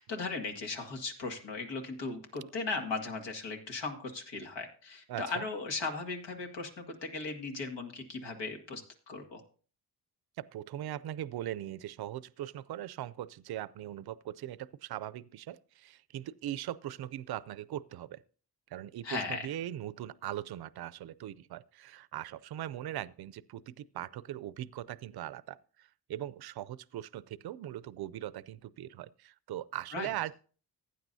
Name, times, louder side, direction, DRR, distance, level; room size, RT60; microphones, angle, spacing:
voice 1, 0.0-9.4 19.0-19.5 29.9-30.1, left 3 dB, 80° left, 2.0 m, -37 dB
voice 2, 5.1-5.4 10.4-18.2 18.7-30.3, right 12 dB, 60° right, 0.5 m, -40 dB
15.5 x 9.4 x 2.7 m
cardioid pair, 75°, 43 cm